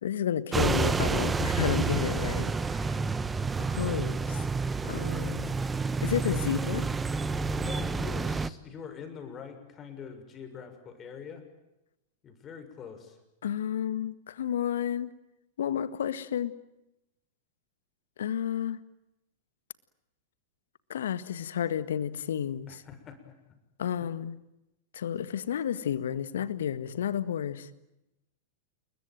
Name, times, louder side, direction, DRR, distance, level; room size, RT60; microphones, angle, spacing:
voice 1, 0.0-3.0 3.6-4.4 4.9-5.5 6.0-6.9 13.4-15.1 15.6-16.5 18.2-18.8 20.9-22.8 23.8-24.4 24.9-27.7, left 9 dB, 70° left, 15 dB, 1.7 m, -31 dB
sound 1, 0.5-8.5, right 4 dB, 15° right, 1.2 m, -29 dB
voice 2, 7.6-11.5 12.2-13.2 22.7-23.4 24.0-24.1, left 6 dB, 30° left, 7 dB, 6.8 m, -44 dB
29.0 x 22.5 x 9.3 m, 0.91 s
figure-of-eight pair, 100°, 0 cm